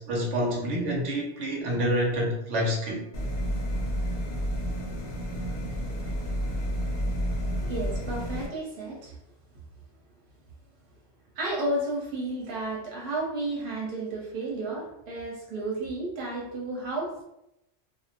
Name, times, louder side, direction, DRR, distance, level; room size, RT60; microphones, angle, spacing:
voice 1, 0.0-3.0, equal, 90° right, -1 dB, 0.9 m, -27 dB
sound 1, 3.1-8.5, equal, 60° left, 0.8 m, -30 dB
voice 2, 7.6-9.1 11.3-17.2, right 2 dB, 55° right, -3 dB, 0.9 m, -32 dB
2.4 x 2.0 x 2.8 m, 0.83 s
omnidirectional pair, 1.2 m